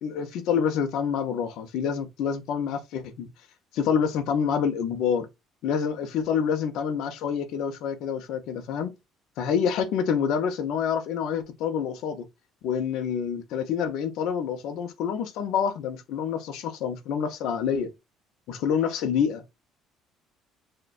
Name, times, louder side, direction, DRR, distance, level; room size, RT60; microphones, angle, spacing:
voice 1, 0.0-3.3 3.7-5.3 5.6-8.9 9.4-12.3 12.6-17.9 18.5-19.4, left 7 dB, 60° left, 0.6 m, -27 dB
6.3 x 2.2 x 2.4 m
cardioid pair, 170°, 0 cm